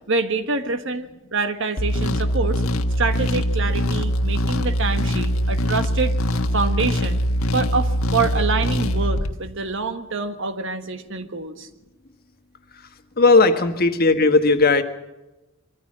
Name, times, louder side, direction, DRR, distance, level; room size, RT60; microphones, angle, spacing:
voice 1, 0.1-2.6 3.0-6.1 6.5-7.2 7.5-11.7, right 4 dB, 60° right, 9 dB, 1.5 m, -26 dB
sound 1, 1.8-9.3, equal, 85° left, 1.4 m, -22 dB
voice 2, 13.2-14.8, left 3 dB, 45° left, 7 dB, 1.6 m, -16 dB
23.5 x 15.0 x 7.5 m, 1.0 s
head